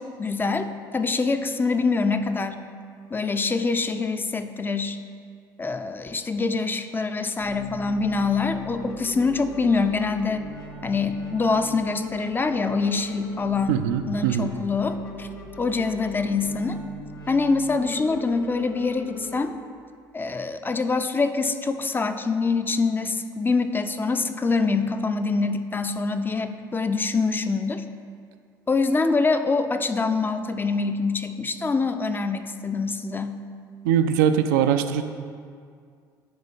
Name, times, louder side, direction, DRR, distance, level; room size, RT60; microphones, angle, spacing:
voice 1, 0.0-2.6 3.1-5.0 5.6-10.5 10.8-15.3 15.6-16.8 17.3-19.5 20.1-27.8 28.7-33.4, left 4 dB, 20° left, 9 dB, 0.4 m, -25 dB
sound 1, 7.4-19.4, left 2 dB, 75° left, 0.7 m, -40 dB
voice 2, 13.7-14.5 33.8-35.0, right 9 dB, 70° right, 8 dB, 0.4 m, -21 dB
9.5 x 3.5 x 4.1 m, 2.2 s
figure-of-eight pair, 60°, 11 cm